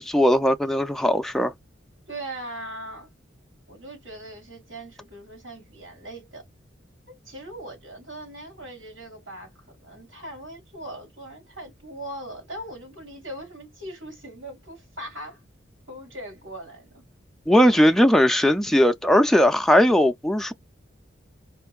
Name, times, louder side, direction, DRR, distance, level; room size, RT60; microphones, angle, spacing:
voice 1, 0.0-1.5 17.5-20.5, equal, ahead, 0.3 m, -19 dB
voice 2, 2.1-3.1 3.7-6.4 7.1-9.5 9.8-15.4 15.9-17.0, right 1 dB, 85° right, 3.2 m, -40 dB
4.4 x 2.5 x 2.3 m
head